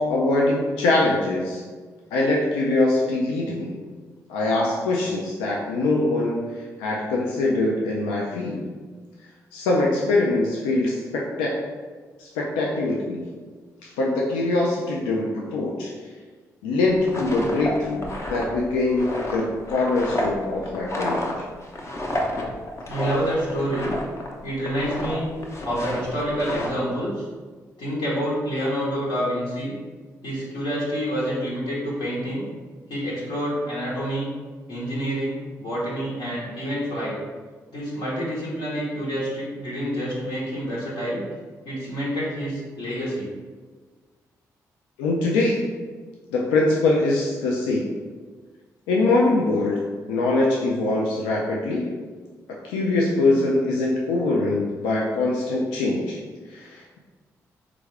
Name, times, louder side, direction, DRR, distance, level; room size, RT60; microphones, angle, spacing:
voice 1, 0.0-1.6 2.1-3.8 4.3-8.7 9.5-11.6 12.2-13.3 13.8-15.9 16.6-21.4 45.0-45.6 46.3-47.9 48.9-49.8 50.1-52.0 52.6-56.2 56.5-57.0, left 2 dB, 85° left, -2 dB, 0.3 m, -23 dB
sound 1, 16.9-24.3 24.6-25.2 25.4-26.7, left 1 dB, 35° left, 0.7 m, -30 dB
voice 2, 22.9-23.9 24.4-25.3 25.6-27.2 27.8-29.7 30.2-32.4 32.9-34.3 34.7-37.1 37.7-41.2 41.6-43.3, equal, 70° left, -7 dB, 1.1 m, -27 dB
3.4 x 2.4 x 3.2 m, 1.4 s
hypercardioid pair, 40°, 8 cm